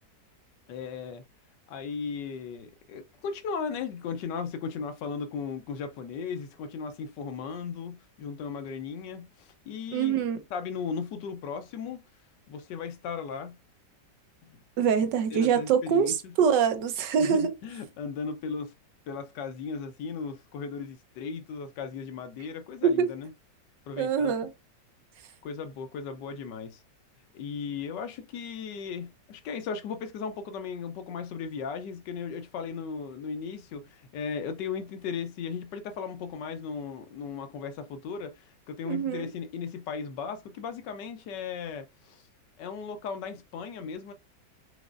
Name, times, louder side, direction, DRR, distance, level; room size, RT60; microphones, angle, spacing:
voice 1, 0.7-1.2 1.7-10.2 10.5-12.0 12.5-13.6 15.3-16.3 17.2-18.7 19.1-23.3 23.9-24.3 25.4-26.8 27.3-42.2 42.6-44.1, left 6 dB, 80° left, 1.4 m, -36 dB
voice 2, 9.9-10.4 14.8-17.5 22.8-23.1 24.0-24.5 38.8-39.3, right 7 dB, 80° right, 1.5 m, -24 dB
5.1 x 4.0 x 2.4 m
omnidirectional pair, 1.9 m